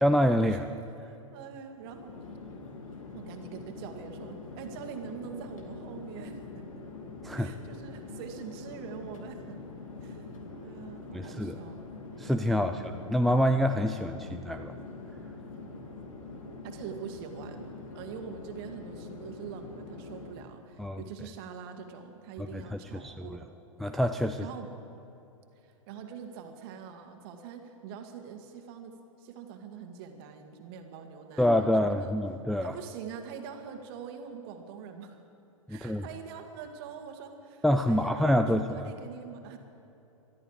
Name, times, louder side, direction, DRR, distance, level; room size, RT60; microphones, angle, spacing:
voice 1, 0.0-0.7 7.2-7.5 11.1-11.6 12.2-12.8 13.1-14.7 20.8-21.0 22.5-23.4 23.8-24.5 31.4-32.7 35.7-36.0 37.6-38.9, equal, ahead, 5 dB, 0.3 m, -26 dB
voice 2, 1.0-2.3 3.1-6.4 6.7-6.8 7.4-9.6 10.0-11.8 12.7-12.9 16.6-17.7 17.9-23.5 24.4-24.7 25.6-32.1 32.6-35.2 35.7-39.6, right 7 dB, 45° right, 5 dB, 1.9 m, -44 dB
Chatter / Fixed-wing aircraft airplane, 1.7-20.6, left 3 dB, 70° left, 2.3 m, -44 dB
21.0 x 13.0 x 4.9 m, 3.0 s
hypercardioid pair, 115°, 18 cm